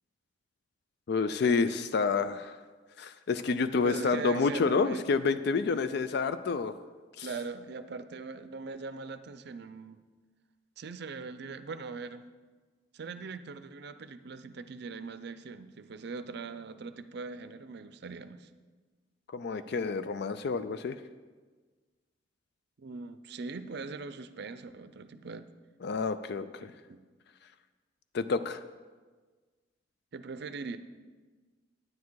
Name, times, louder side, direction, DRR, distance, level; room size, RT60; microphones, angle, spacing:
voice 1, 1.1-2.5 3.0-6.8 7.2-7.3 19.3-20.9 25.8-26.7 28.1-28.6, left 4 dB, 60° left, 11 dB, 0.4 m, -29 dB
voice 2, 3.8-5.0 7.2-10.0 10.8-12.2 12.9-18.5 22.8-25.5 26.6-27.1 30.1-30.8, right 4 dB, 60° right, 11 dB, 0.5 m, -41 dB
9.5 x 9.3 x 4.7 m, 1.4 s
head